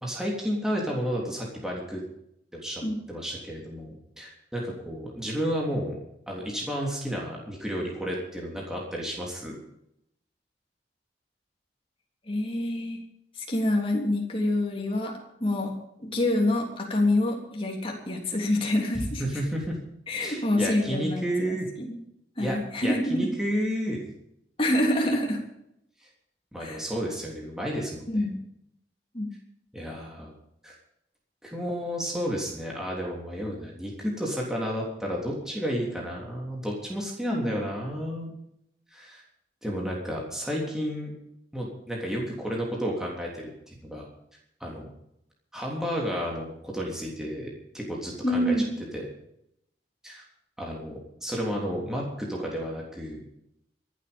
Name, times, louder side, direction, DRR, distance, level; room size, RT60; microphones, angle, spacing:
voice 1, 0.0-2.0 2.5-6.0 6.3-9.6 19.2-19.8 20.2-21.7 22.4-24.1 26.5-28.2 29.7-30.3 30.6-30.7 31.4-38.3 38.9-39.2 39.6-41.1 41.5-44.1 44.6-44.9 45.5-48.7 48.9-49.1 50.0-50.2 50.6-53.3, equal, 5° right, -3 dB, 3.3 m, -32 dB
voice 2, 12.3-13.0 13.5-15.1 15.4-15.7 16.0-19.2 20.1-22.0 22.4-23.2 24.6-25.4 26.6-26.8 28.1-28.4 29.1-29.3 37.3-37.6 48.2-48.7, left 1 dB, 30° left, 0 dB, 3.4 m, -26 dB
25.0 x 8.4 x 5.4 m, 0.77 s
head